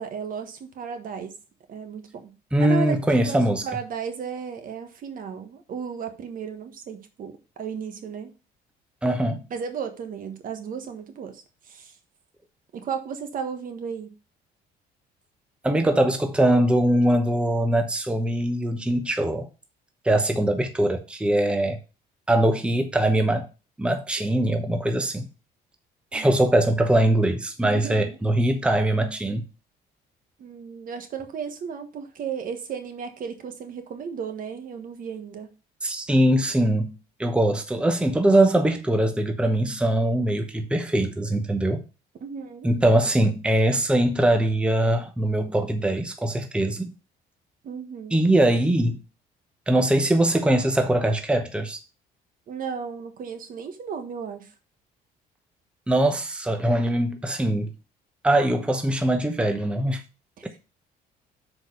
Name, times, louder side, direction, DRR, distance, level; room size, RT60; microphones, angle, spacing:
voice 1, 0.0-1.3 1.7-2.9 3.2-8.3 9.5-12.0 12.7-14.1 26.1-26.4 27.7-28.2 30.4-35.5 42.2-42.7 47.6-48.3 52.5-54.5 60.4-60.6, right 6 dB, 55° right, 1.5 m, -34 dB
voice 2, 2.5-3.6 9.0-9.5 15.6-19.5 20.0-21.8 22.3-23.5 23.8-25.3 26.1-29.4 35.8-36.9 37.2-41.8 42.6-46.9 48.1-49.0 49.7-51.8 55.9-57.7 58.2-60.0, right 1 dB, 5° right, 0.9 m, -22 dB
6.5 x 4.9 x 5.5 m
cardioid pair, 110°, 17 cm